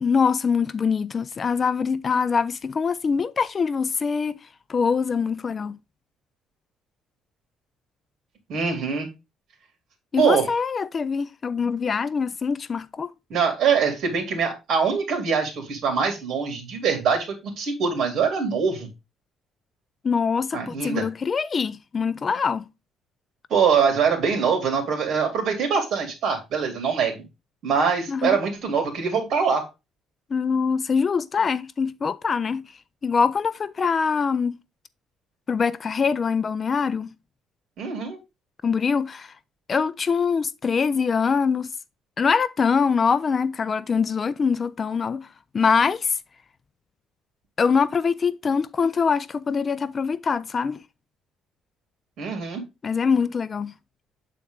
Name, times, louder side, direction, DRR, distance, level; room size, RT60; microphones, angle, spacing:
voice 1, 0.0-4.4 4.7-5.8 10.1-13.1 20.0-22.7 28.1-28.4 30.3-32.7 33.0-34.6 35.5-37.1 38.6-39.3 39.7-41.7 42.2-45.3 45.5-46.2 47.6-50.8 52.8-53.7, left 5 dB, 30° left, 0.3 m, -23 dB
voice 2, 8.5-9.1 10.2-10.5 13.3-18.9 20.5-21.1 23.5-27.2 27.6-29.7 37.8-38.2 52.2-52.6, right 6 dB, 55° right, 2.5 m, -23 dB
7.9 x 4.2 x 3.6 m
cardioid pair, 155°, 0 cm